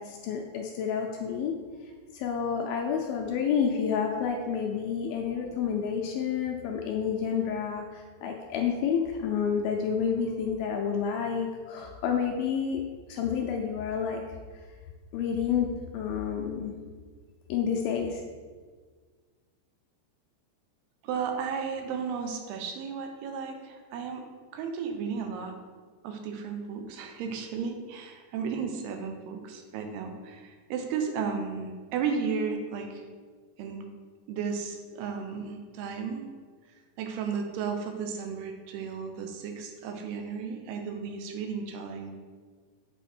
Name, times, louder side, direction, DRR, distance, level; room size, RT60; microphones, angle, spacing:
voice 1, 0.0-1.5 2.1-12.8 13.1-14.2 15.1-16.7 17.5-18.2, left 7 dB, 80° left, 1 dB, 2.2 m, -29 dB
voice 2, 21.0-24.2 24.5-25.5 26.0-33.0 33.6-33.9 34.3-36.3 37.0-42.1, right 6 dB, 80° right, 4 dB, 2.7 m, -34 dB
8.1 x 4.5 x 4.4 m, 1.5 s
omnidirectional pair, 4.7 m